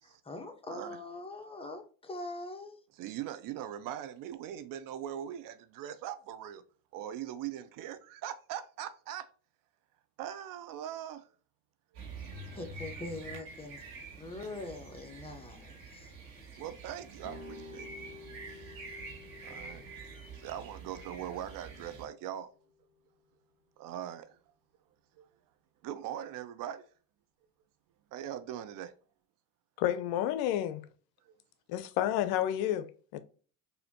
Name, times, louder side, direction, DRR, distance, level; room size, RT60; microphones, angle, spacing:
voice 1, 0.0-2.8 12.5-16.1, left 2 dB, 15° left, 0.8 m, -43 dB
voice 2, 0.7-1.0 3.0-6.6 6.9-9.3 10.2-11.3 16.6-17.9 18.5-18.7 19.4-19.8 20.3-22.5 23.8-24.4 25.2-25.3 25.8-26.9 28.1-28.9 31.2-31.3, right 10 dB, 55° right, 0.5 m, -41 dB
sound 1, 11.9-22.1, right 3 dB, 85° right, 1.9 m, -47 dB
sound 2, 17.2-23.0, left 3 dB, 35° left, 1.4 m, -52 dB
voice 3, 29.8-30.8 31.7-33.2, left 11 dB, 65° left, 0.6 m, -30 dB
4.1 x 2.7 x 2.8 m
supercardioid pair, 85°, 41 cm